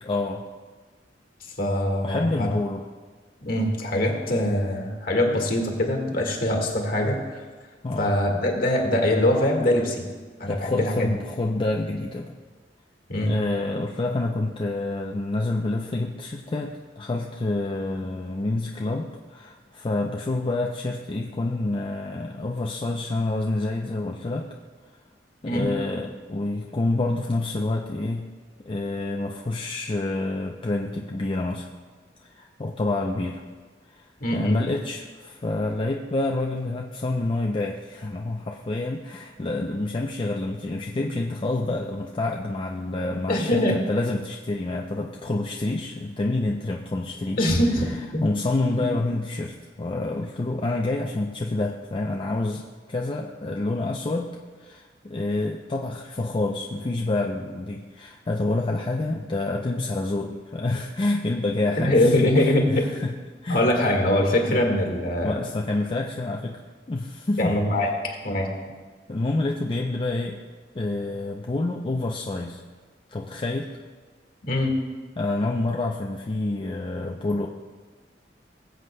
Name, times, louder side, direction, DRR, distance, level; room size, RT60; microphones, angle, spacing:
voice 1, 0.0-0.4 2.0-2.8 7.8-8.1 10.5-12.4 13.2-24.5 25.4-28.3 28.6-31.7 32.2-33.4 33.9-34.1 34.3-47.5 48.2-52.6 52.9-54.3 54.6-63.2 63.4-63.6 64.5-64.6 65.2-66.6 66.9-67.5 69.1-70.4 70.7-72.6 73.1-73.8 75.2-77.5, left 2 dB, 30° left, 0 dB, 0.5 m, -28 dB
voice 2, 1.6-2.5 3.4-7.3 8.0-10.0 10.4-11.1 13.1-13.4 25.4-25.7 34.2-34.6 43.3-43.8 47.4-47.9 48.1-48.2 48.7-48.8 61.8-62.8 63.5-65.4 67.4-68.5 74.4-74.7, left 1 dB, 55° left, 1 dB, 1.6 m, -23 dB
20.0 x 7.9 x 2.2 m, 1.4 s
head